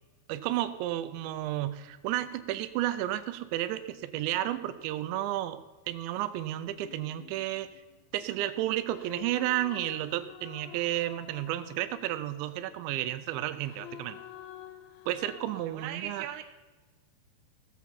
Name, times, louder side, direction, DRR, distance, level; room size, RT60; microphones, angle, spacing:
voice 1, 0.3-7.7 8.1-14.2 15.1-16.3, right 14 dB, 90° right, 12 dB, 3.0 m, -32 dB
sound 1, 6.8-8.3 8.9-12.7 13.6-15.7, left 11 dB, 80° left, 2.3 m, -49 dB
voice 2, 15.4-16.5, right 10 dB, 70° right, 6 dB, 2.3 m, -40 dB
17.0 x 7.6 x 5.7 m, 1.2 s
omnidirectional pair, 5.1 m